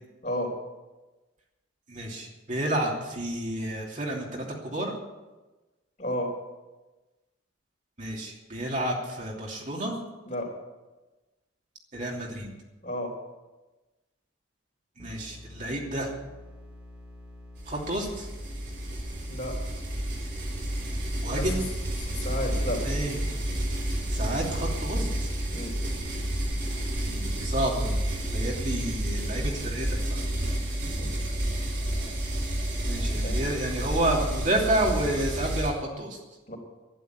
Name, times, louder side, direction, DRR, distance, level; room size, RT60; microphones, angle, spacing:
voice 1, 1.9-4.9 8.0-9.9 11.9-12.5 15.0-16.1 17.7-18.3 21.2-21.6 22.8-23.2 24.1-25.3 27.0-28.0 28.3-30.2 32.8-36.2, right 1 dB, 40° right, -2 dB, 2.9 m, -30 dB
voice 2, 6.0-6.3 10.3-10.5 12.8-13.1 19.3-19.6 21.3-21.4 22.1-22.8 24.9-25.1 25.5-25.8 31.0-31.1 33.2-33.4 36.5-36.6, left 1 dB, 40° left, 0 dB, 3.9 m, -32 dB
sound 1, 15.0-27.1, left 1 dB, 5° right, 2.6 m, -47 dB
sound 2, 17.6-35.7, right 1 dB, 60° right, 4.8 m, -30 dB
12.0 x 10.5 x 9.2 m, 1.2 s
head